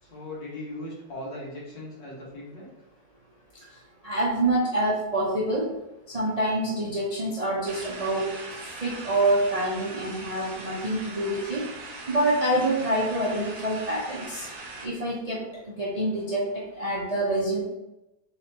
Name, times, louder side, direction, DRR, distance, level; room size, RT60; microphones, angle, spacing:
voice 1, 0.0-2.7, left 1 dB, 85° left, -6 dB, 2.4 m, -38 dB
voice 2, 3.7-5.7 6.1-8.3 8.8-11.7 12.1-14.5 14.8-17.6, right 1 dB, 45° right, -5 dB, 0.5 m, -26 dB
sound 1, 7.7-14.9, right 3 dB, 65° right, 1.5 m, -40 dB
4.2 x 4.2 x 2.9 m, 0.94 s
omnidirectional pair, 1.9 m